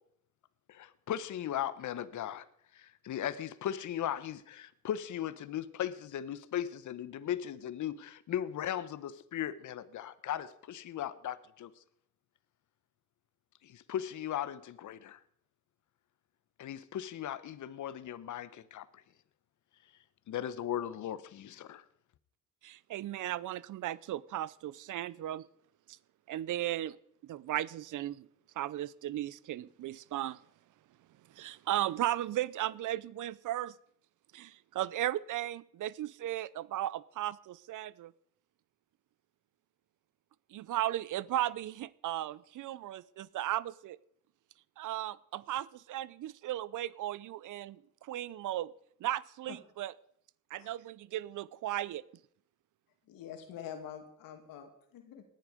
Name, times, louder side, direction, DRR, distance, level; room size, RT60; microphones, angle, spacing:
voice 1, 0.7-2.5 2.7-11.7 13.6-15.2 16.6-18.9 20.3-21.8, left 10 dB, 60° left, 14 dB, 1.0 m, -37 dB
voice 2, 22.6-25.5 25.9-26.0 26.3-27.0 27.2-28.3 28.6-30.4 31.3-33.7 34.3-38.1 40.5-44.0 44.8-48.7 49.0-49.9 50.5-52.0, right 13 dB, 65° right, 21 dB, 0.7 m, -36 dB
voice 3, 53.1-55.2, left 9 dB, 85° left, 5 dB, 2.4 m, -46 dB
18.5 x 10.5 x 5.1 m, 0.69 s
cardioid pair, 75°, 33 cm